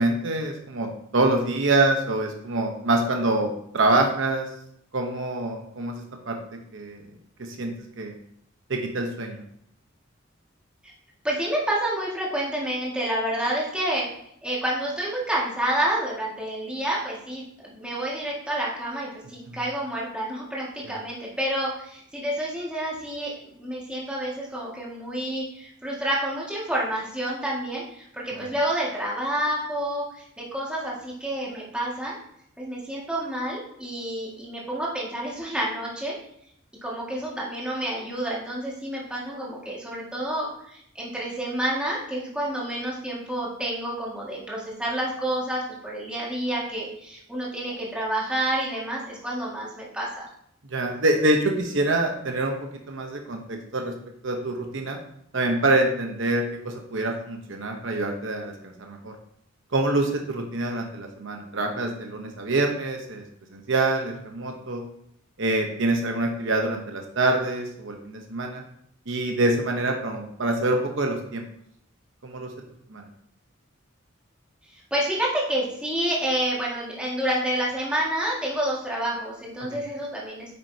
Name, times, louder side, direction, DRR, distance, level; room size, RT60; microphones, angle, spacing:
voice 1, 0.0-4.5 4.9-6.0 6.3-6.4 6.7-7.0 7.4-8.1 8.7-9.4 19.5-19.6 20.8-20.9 28.4-28.5 50.7-52.6 52.9-53.9 54.2-55.0 55.3-59.1 59.7-63.2 63.5-64.8 65.4-68.6 69.1-71.4 72.2-72.5 72.9-73.1, right 2 dB, 60° right, 3 dB, 0.9 m, -25 dB
voice 2, 11.2-14.1 14.4-32.1 32.6-36.1 36.8-50.3 74.7-80.5, right 1 dB, 5° right, -6 dB, 1.9 m, -29 dB
9.0 x 6.2 x 2.8 m, 0.71 s
head